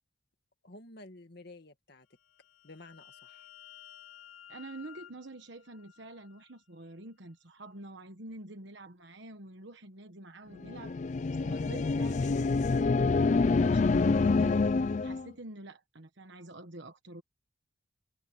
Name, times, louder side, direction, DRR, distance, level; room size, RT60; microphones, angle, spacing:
voice 1, 0.6-2.1 2.6-3.5, left 2 dB, 55° left, 2.0 m, -51 dB
sound 1, 2.1-6.6, left 12 dB, 75° left, 3.5 m, -54 dB
voice 2, 4.5-11.0 11.3-14.8 15.0-17.2, right 2 dB, 60° right, 1.3 m, -47 dB
sound 2, 10.6-15.3, left 4 dB, 35° left, 0.3 m, -27 dB
head